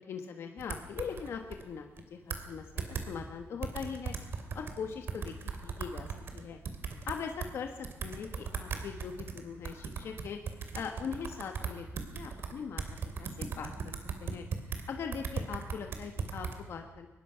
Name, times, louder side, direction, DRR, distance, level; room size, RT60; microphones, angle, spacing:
voice 1, 0.0-4.1 4.5-5.3 5.6-6.1 6.3-6.6 7.1-10.4 10.7-12.8 13.2-13.9 14.2-14.4 14.9-17.1, left 6 dB, 65° left, 4 dB, 1.4 m, -41 dB
sound 1, 0.6-1.6 2.0-2.1 2.3-2.5 2.8-3.1 3.6-4.8 5.1-7.5 7.8-14.8 15.1-16.5, right 5 dB, 55° right, 2.6 m, -38 dB
23.5 x 20.0 x 5.7 m, 1.2 s
wide cardioid pair, 165°, 5 cm